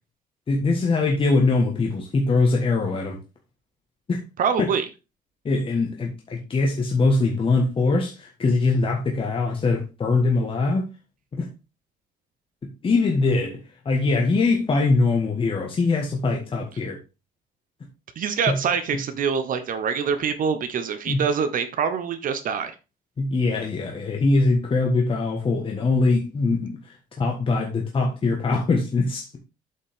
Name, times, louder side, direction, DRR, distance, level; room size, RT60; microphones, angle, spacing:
voice 1, 0.5-3.2 4.1-4.2 4.6-4.7 5.4-10.8 11.3-11.5 12.8-17.0 18.5-18.6 21.1-21.2 23.2-29.4, left 3 dB, 30° left, 1.5 m, -22 dB
voice 2, 4.4-4.8 18.2-22.7, right 6 dB, 55° right, 0.9 m, -25 dB
8.2 x 5.4 x 3.6 m
cardioid pair, 110°, 17 cm